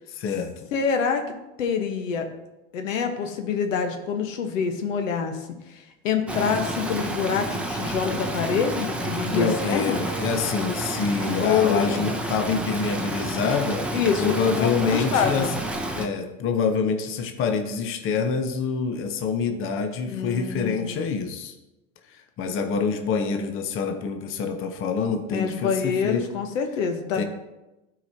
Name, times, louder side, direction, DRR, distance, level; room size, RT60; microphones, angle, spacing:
voice 1, 0.1-0.5 9.3-13.9 14.2-15.5 15.9-21.5 22.1-26.3 27.1-27.2, left 5 dB, 35° left, 6 dB, 0.8 m, -26 dB
voice 2, 0.7-1.3 1.6-2.3 2.7-10.1 11.4-12.1 13.9-15.5 20.0-21.1 25.3-27.2, left 6 dB, 75° left, 6 dB, 1.1 m, -26 dB
Stream, 6.3-16.1, right 1 dB, 5° right, 0.7 m, -30 dB
12.0 x 4.9 x 2.7 m, 0.99 s
hypercardioid pair, 105°, 39 cm